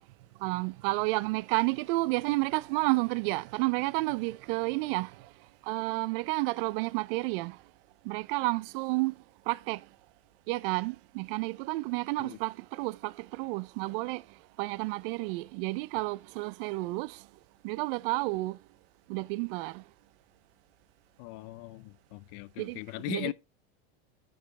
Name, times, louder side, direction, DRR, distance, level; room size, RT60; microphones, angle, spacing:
voice 1, 0.4-5.1 5.7-7.6 8.0-9.2 9.5-9.8 10.5-14.2 14.6-17.2 17.6-18.6 19.1-19.8 22.6-22.8 23.1-23.3, right 23 dB, 65° right, 0.5 m, -31 dB
voice 2, 21.2-23.3, left 19 dB, 50° left, 0.5 m, -39 dB
8.5 x 5.5 x 4.3 m
supercardioid pair, 155°, 31 cm